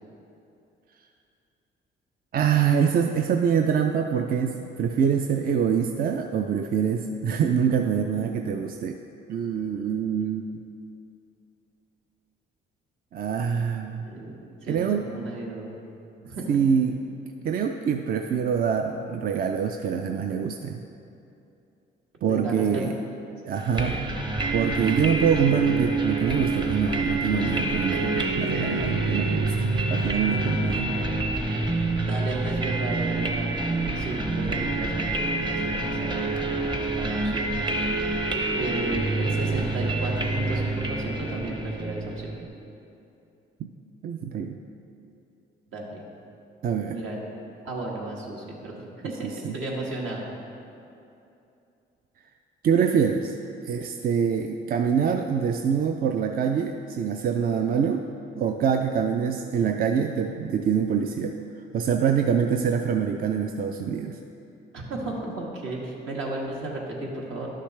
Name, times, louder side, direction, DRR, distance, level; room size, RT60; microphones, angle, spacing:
voice 1, 2.3-9.0 9.3-10.5 13.1-14.1 14.7-15.1 16.5-17.0 17.4-20.8 22.2-23.0 23.4-24.0 24.5-30.9 43.6-43.7 44.0-44.6 46.6-47.0 49.2-49.6 52.6-53.4 53.6-58.1 58.4-61.4 61.7-64.2, right 7 dB, 50° right, 5 dB, 0.4 m, -25 dB
voice 2, 14.0-14.3 14.6-15.7 16.2-16.6 22.3-22.8 23.7-24.0 32.0-33.5 33.9-37.5 38.6-42.3 45.7-46.0 46.9-47.2 47.6-50.3 64.7-67.5, right 2 dB, 75° right, -3 dB, 1.7 m, -34 dB
sound 1, 23.8-42.5, right 2 dB, 25° right, 0.8 m, -27 dB
11.5 x 6.7 x 3.3 m, 2.7 s
cardioid pair, 90°, 20 cm